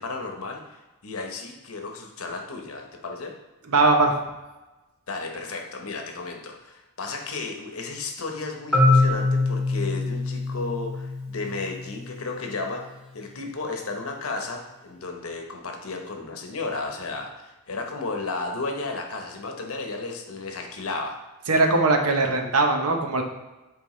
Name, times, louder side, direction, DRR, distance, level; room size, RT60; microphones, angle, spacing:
voice 1, 0.0-3.4 5.1-12.8 13.1-21.2, left 3 dB, 70° left, 3 dB, 0.9 m, -33 dB
voice 2, 3.7-4.2 21.5-23.2, right 3 dB, 90° right, 4 dB, 0.8 m, -20 dB
Marimba xylophone, 8.7-12.6, left 2 dB, ahead, 1.2 m, -24 dB
8.7 x 3.5 x 3.1 m, 1.1 s
head